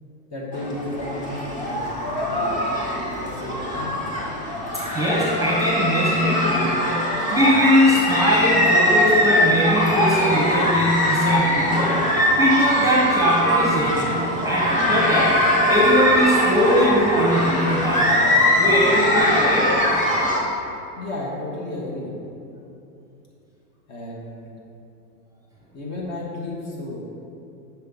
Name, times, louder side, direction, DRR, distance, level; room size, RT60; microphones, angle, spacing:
voice 1, 0.3-2.6 3.1-4.0 21.0-22.1 23.9-24.5 25.7-27.1, left 1 dB, 35° left, -3 dB, 1.4 m, -33 dB
sound 1, 0.5-20.4, equal, 15° left, 0.9 m, -21 dB
voice 2, 4.9-6.9 7.3-14.1 14.4-15.4 15.7-18.3 18.6-19.7, equal, 5° right, -6 dB, 1.0 m, -21 dB
5.9 x 3.4 x 5.3 m, 2.8 s
hypercardioid pair, 120°, 45 cm